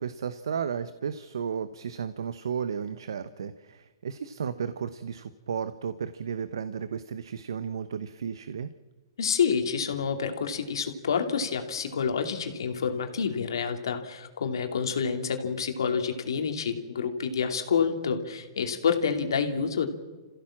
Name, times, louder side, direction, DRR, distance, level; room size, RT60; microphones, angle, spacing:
voice 1, 0.0-8.7, right 7 dB, 85° right, 13 dB, 1.0 m, -33 dB
voice 2, 9.2-19.9, left 6 dB, 85° left, 5 dB, 2.7 m, -28 dB
28.0 x 15.5 x 7.4 m, 1.3 s
hypercardioid pair, 140°, 2 cm